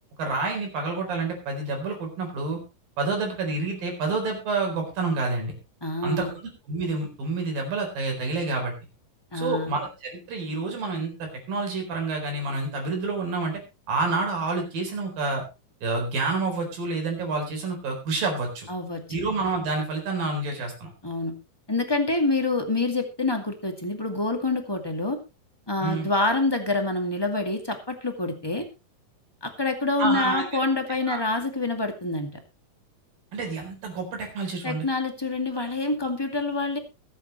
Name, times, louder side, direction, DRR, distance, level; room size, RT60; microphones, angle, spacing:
voice 1, 0.2-2.6 3.0-5.5 6.0-6.3 6.7-8.7 9.3-13.6 13.9-15.4 15.8-18.7 19.1-20.9 25.8-26.1 30.0-30.4 31.1-31.2 33.3-34.9, right 3 dB, 80° right, 2 dB, 6.1 m, -28 dB
voice 2, 5.8-6.4 9.3-9.7 18.7-19.0 21.0-21.3 21.7-25.2 25.7-28.6 29.4-32.3 34.6-36.8, left 2 dB, 10° left, 4 dB, 1.3 m, -26 dB
22.0 x 8.3 x 3.1 m, 0.28 s
omnidirectional pair, 4.0 m